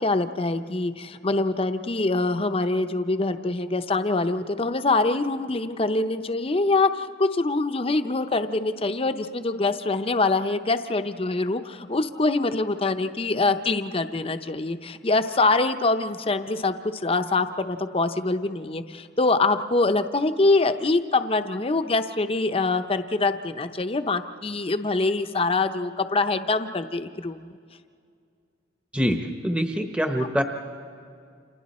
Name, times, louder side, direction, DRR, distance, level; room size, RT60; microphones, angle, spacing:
voice 1, 0.0-27.5 30.2-30.4, left 3 dB, 30° left, 9 dB, 0.7 m, -24 dB
voice 2, 28.9-30.4, equal, 5° right, 4 dB, 0.9 m, -25 dB
29.5 x 27.0 x 4.3 m, 2.3 s
head